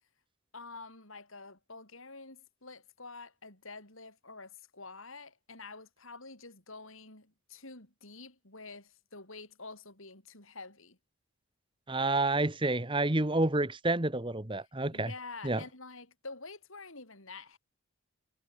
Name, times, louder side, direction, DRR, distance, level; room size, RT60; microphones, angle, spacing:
voice 1, 0.5-11.0 14.9-17.6, left 3 dB, 70° left, 7.7 m, -48 dB
voice 2, 11.9-15.1 15.4-15.6, right 2 dB, 25° right, 1.3 m, -29 dB
head